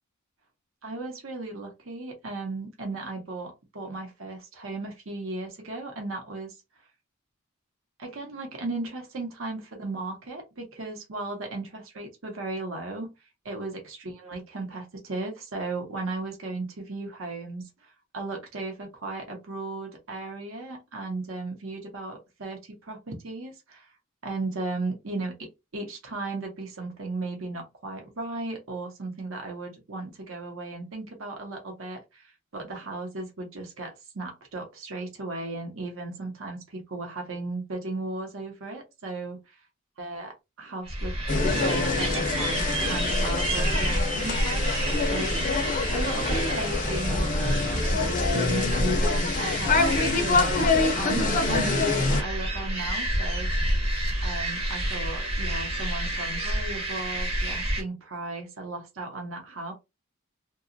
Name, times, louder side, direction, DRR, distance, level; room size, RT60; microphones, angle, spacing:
voice 1, 0.8-6.6 8.0-13.1 13.4-23.9 24.2-39.6 40.0-53.8 54.2-59.7, right 2 dB, 70° right, 0.8 m, -36 dB
sound 1, 40.9-57.8, right 1 dB, 30° right, 0.8 m, -29 dB
sound 2, 41.3-52.2, left 3 dB, 40° left, 0.5 m, -26 dB
2.8 x 2.3 x 2.5 m
head